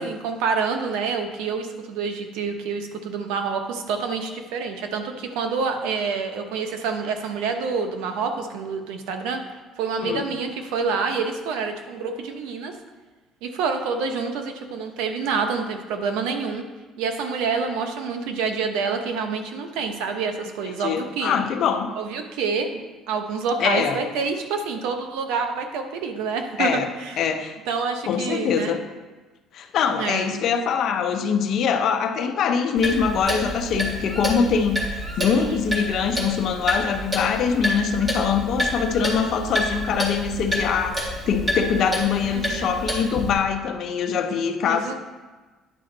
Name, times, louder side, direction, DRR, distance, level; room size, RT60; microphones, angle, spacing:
voice 1, 0.0-9.4 9.8-12.7 13.4-16.6 17.0-21.4 22.0-22.8 23.1-27.2 27.7-28.7 29.9-30.3 35.3-35.8 42.2-42.7 44.7-44.9, right 5 dB, 90° right, 6 dB, 0.9 m, -27 dB
voice 2, 20.6-21.9 23.6-24.0 26.6-26.9 27.2-27.5 28.1-28.8 29.5-44.9, left 6 dB, 60° left, 6 dB, 0.8 m, -23 dB
Clock, 32.8-43.3, equal, 20° right, 2.1 m, -28 dB
9.7 x 5.2 x 4.0 m, 1.3 s
cardioid pair, 115°, 0 cm